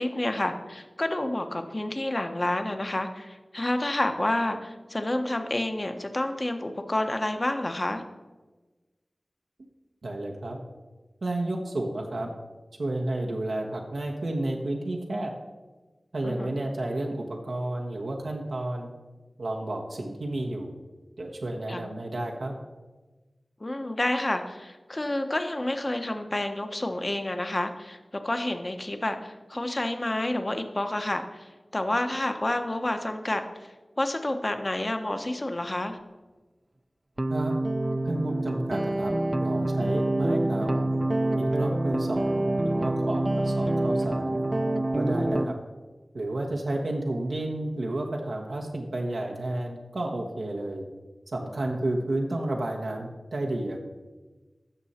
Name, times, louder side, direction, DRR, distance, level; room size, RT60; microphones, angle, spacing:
voice 1, 0.0-8.0 16.2-16.5 21.7-21.8 23.6-36.0 45.3-45.5, left 1 dB, 40° left, 6 dB, 1.0 m, -29 dB
voice 2, 10.0-10.6 11.2-12.3 12.8-15.3 16.1-18.9 19.4-20.7 21.2-22.5 37.3-37.5 38.0-39.1 39.4-40.9 41.4-44.4 44.9-45.5 46.1-50.8 51.3-53.8, right 1 dB, 90° right, 0 dB, 1.1 m, -31 dB
sound 1, 37.2-45.5, right 1 dB, 35° right, 0.5 m, -26 dB
15.0 x 6.3 x 4.2 m, 1.2 s
wide cardioid pair, 60°, 0 cm